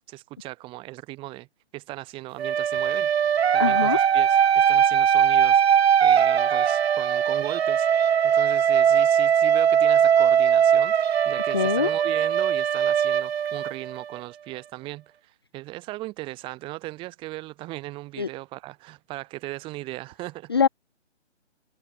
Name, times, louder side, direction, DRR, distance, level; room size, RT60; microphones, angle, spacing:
voice 1, 0.1-1.5 1.7-3.1 3.5-5.6 6.0-20.5, right 19 dB, 15° right, 3.6 m, -38 dB
sound 1, 2.4-14.2, right 8 dB, 60° right, 0.6 m, -20 dB
voice 2, 3.6-4.0 11.5-11.9 18.2-18.3 20.5-20.7, left 6 dB, 20° left, 0.5 m, -22 dB
hypercardioid pair, 160°, 35 cm